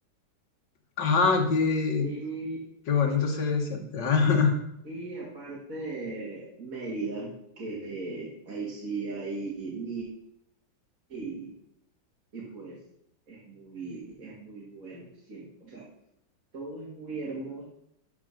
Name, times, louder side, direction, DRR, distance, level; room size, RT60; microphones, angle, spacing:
voice 1, 1.0-2.1 2.9-4.5, left 5 dB, 80° left, 3 dB, 2.2 m, -24 dB
voice 2, 2.0-2.6 4.8-10.1 11.1-11.6 12.3-12.8 13.3-15.9 16.5-17.7, right 3 dB, 50° right, -5 dB, 2.5 m, -37 dB
12.0 x 5.0 x 6.5 m, 0.76 s
omnidirectional pair, 1.9 m